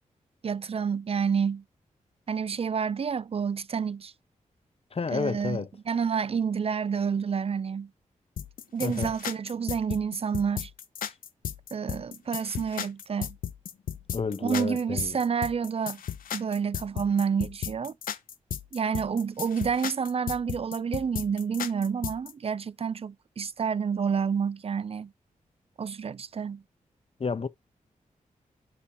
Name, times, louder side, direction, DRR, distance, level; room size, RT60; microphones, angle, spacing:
voice 1, 0.4-1.6 2.3-4.1 5.1-7.9 8.7-10.7 11.7-13.4 14.4-16.0 16.3-17.9 18.7-25.1 25.8-26.6, right 6 dB, 45° right, 0.5 m, -29 dB
voice 2, 4.9-5.7 8.8-9.1 14.1-15.2 27.2-27.5, left 5 dB, 45° left, 1.0 m, -30 dB
sound 1, 8.4-22.3, left 9 dB, 90° left, 0.8 m, -35 dB
10.0 x 3.4 x 4.1 m
cardioid pair, 70°, 14 cm